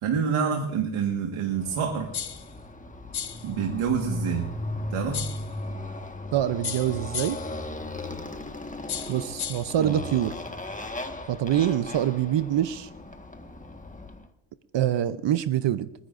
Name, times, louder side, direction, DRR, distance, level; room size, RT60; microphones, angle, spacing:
voice 1, 0.0-2.1 3.4-4.5 4.9-5.2 9.8-10.0, right 6 dB, 80° right, 3 dB, 1.7 m, -27 dB
Motorcycle, 1.5-14.3, left 2 dB, 15° left, 1.5 m, -37 dB
sound 1, 2.1-2.5 3.1-3.5 5.1-5.5 6.6-7.5 8.9-9.7, left 7 dB, 50° left, 1.1 m, -34 dB
voice 2, 6.3-7.4 9.1-10.3 11.3-12.9 14.7-15.9, right 11 dB, 60° right, 14 dB, 0.7 m, -25 dB
27.5 x 10.0 x 2.6 m, 0.87 s
supercardioid pair, 55°, 49 cm